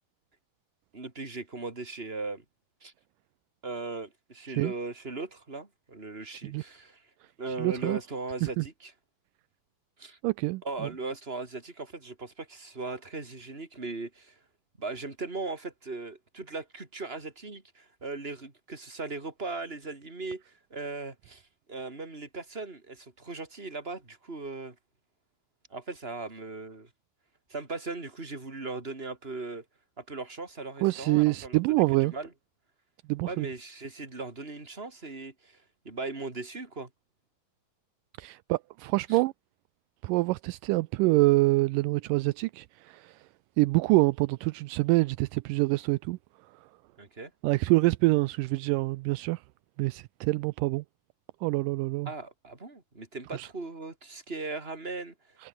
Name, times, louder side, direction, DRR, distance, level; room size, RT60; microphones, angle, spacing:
voice 1, 0.9-2.4 2.8-2.9 3.6-7.0 7.4-8.9 10.0-10.2 10.6-14.4 14.8-21.4 21.7-24.8 25.7-26.9 27.5-29.6 30.0-32.3 33.3-36.9 39.1-39.2 47.0-47.3 52.1-55.4, right 3 dB, 15° right, 3.8 m, -38 dB
voice 2, 6.3-6.6 7.6-8.0 8.4-8.6 10.2-10.9 30.8-32.1 33.1-33.5 38.2-39.3 40.0-43.2 43.6-46.2 47.4-49.4 49.8-50.8 51.4-52.1 53.3-53.5, right 21 dB, 85° right, 1.9 m, -26 dB
omnidirectional pair, 4.4 m